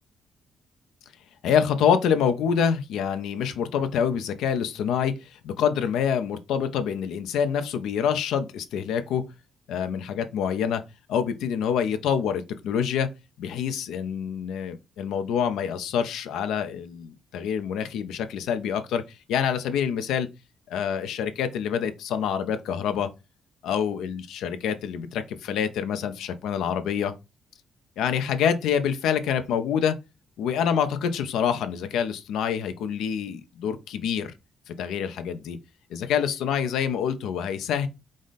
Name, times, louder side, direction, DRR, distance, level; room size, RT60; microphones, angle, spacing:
voice 1, 1.4-9.2 9.7-10.8 11.1-13.1 13.4-19.0 19.3-20.3 20.7-23.1 23.6-27.1 28.0-30.0 30.4-34.3 34.7-35.6 35.9-37.9, left 8 dB, 85° left, 0.6 m, -26 dB
4.9 x 2.1 x 3.9 m
cardioid pair, 90°, 0 cm